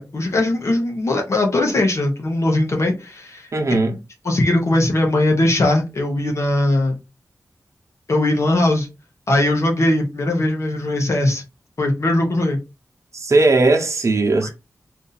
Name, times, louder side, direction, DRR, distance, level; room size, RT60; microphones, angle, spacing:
voice 1, 0.0-3.5 4.2-7.0 8.1-8.9 9.3-11.4 11.8-12.6 14.4-14.5, left 1 dB, 50° left, 0.9 m, -19 dB
voice 2, 3.5-4.0 13.1-14.5, right 2 dB, 55° right, 0.9 m, -17 dB
2.6 x 2.6 x 4.0 m
wide cardioid pair, 115°, 6 cm